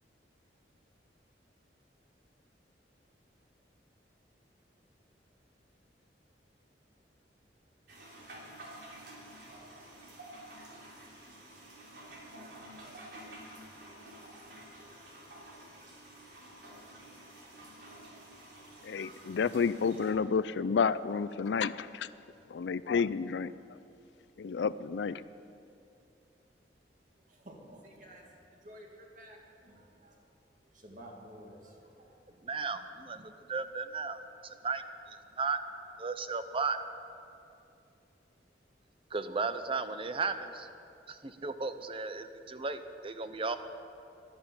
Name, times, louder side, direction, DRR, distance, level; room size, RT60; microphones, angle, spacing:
sound 1, 7.9-20.1, right 1 dB, 70° right, 3.3 m, -50 dB
voice 1, 18.8-22.1 22.5-23.5 24.4-25.2, left 5 dB, 75° left, 16 dB, 0.4 m, -30 dB
voice 2, 27.3-30.2 30.6-32.2, equal, 45° right, 0 dB, 2.4 m, -52 dB
voice 3, 32.4-34.8 35.1-35.6 36.0-36.8 39.1-40.7 41.1-43.6, right 4 dB, 30° right, 10 dB, 0.6 m, -35 dB
12.5 x 11.0 x 8.8 m, 2.6 s
head